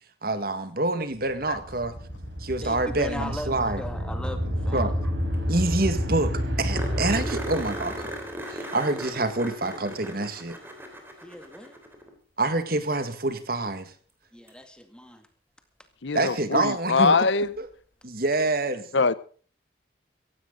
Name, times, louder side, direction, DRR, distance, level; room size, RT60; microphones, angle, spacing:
voice 1, 0.2-2.0 2.4-3.8 4.7-4.9 5.5-8.2 8.5-10.6 12.4-13.9 16.1-17.2 17.6-17.7 18.0-19.1, right 2 dB, 50° right, 1.8 m, -27 dB
sound 1, 1.3-8.2, equal, 90° right, 5.6 m, -30 dB
voice 2, 2.6-4.9 11.2-11.8 14.3-15.3, equal, 5° left, 2.0 m, -38 dB
sound 2, 5.3-5.4 5.6-5.7 6.0-6.1 6.7-12.1 14.5-14.6 17.4-17.5, right 1 dB, 10° right, 3.5 m, -37 dB
voice 3, 16.0-17.5 18.9-19.1, left 4 dB, 75° left, 0.8 m, -22 dB
16.5 x 16.0 x 3.9 m
head